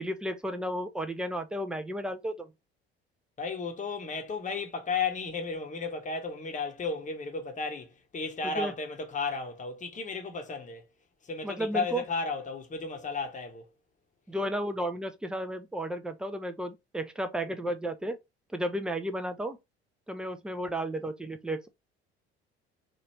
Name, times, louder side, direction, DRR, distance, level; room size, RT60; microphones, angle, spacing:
voice 1, 0.0-2.5 8.4-8.7 11.4-12.0 14.3-18.2 18.5-19.6 20.1-21.7, right 1 dB, 5° right, 0.4 m, -33 dB
voice 2, 3.4-10.8 11.2-13.6, left 4 dB, 25° left, 0.9 m, -34 dB
3.0 x 2.4 x 3.0 m
figure-of-eight pair, 55°, 32 cm